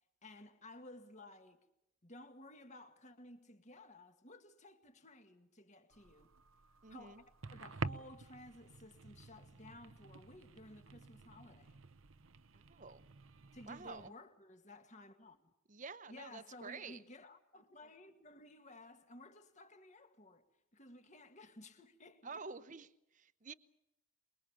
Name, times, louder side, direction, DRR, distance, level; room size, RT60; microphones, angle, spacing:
voice 1, 0.2-1.6 2.0-6.3 6.9-7.2 7.5-11.8 13.5-15.5 16.1-20.5 20.7-22.4, left 1 dB, 35° left, 2.0 m, -56 dB
sound 1, 5.9-14.1, right 4 dB, 85° right, 0.9 m, -49 dB
voice 2, 6.8-7.2 12.5-13.0 13.7-14.1 15.7-17.0 22.2-23.5, right 4 dB, 40° right, 0.9 m, -49 dB
24.0 x 22.5 x 7.4 m
head